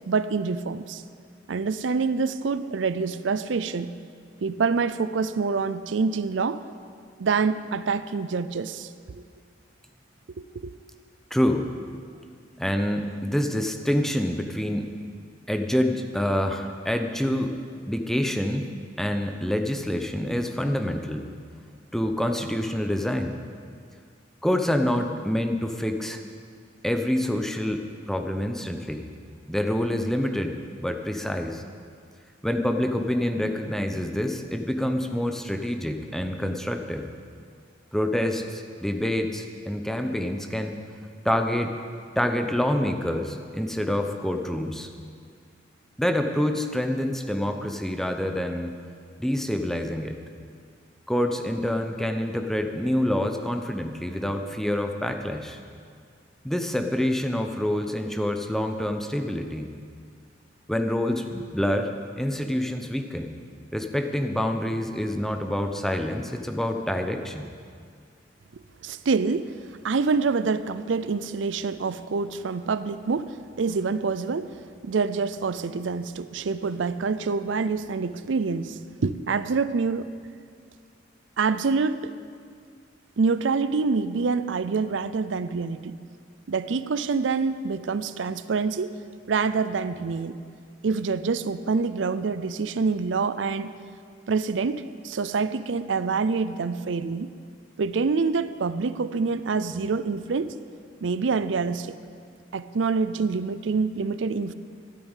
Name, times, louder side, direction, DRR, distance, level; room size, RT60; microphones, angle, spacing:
voice 1, 0.1-1.0 1.5-3.9 4.4-6.6 7.2-9.2 10.4-10.7 68.5-69.5 69.8-74.5 74.8-80.1 81.4-82.1 83.2-86.0 86.5-88.9 89.3-90.4 90.8-93.7 94.3-97.3 97.8-100.6 101.0-101.9 102.5-104.5, right 4 dB, 85° right, 14 dB, 0.5 m, -26 dB
voice 2, 11.3-11.7 12.6-14.9 15.5-17.5 17.9-18.7 19.0-21.2 21.9-23.4 24.4-26.2 26.8-29.1 29.5-31.6 32.4-37.1 37.9-40.8 41.2-41.7 42.2-44.9 46.0-48.7 49.2-50.2 51.1-55.6 56.4-59.7 60.7-63.3 63.7-67.5, left 1 dB, ahead, 5 dB, 0.8 m, -27 dB
12.5 x 10.0 x 8.1 m, 2.1 s
head